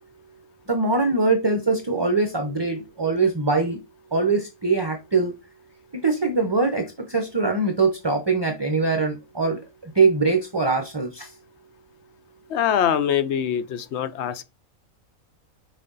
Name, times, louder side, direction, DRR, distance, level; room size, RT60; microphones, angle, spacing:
voice 1, 0.7-3.8 4.1-5.3 5.9-11.3, right 3 dB, 25° right, 0.5 m, -22 dB
voice 2, 12.5-14.4, left 9 dB, 60° left, 0.8 m, -23 dB
6.1 x 4.2 x 3.9 m
omnidirectional pair, 1.5 m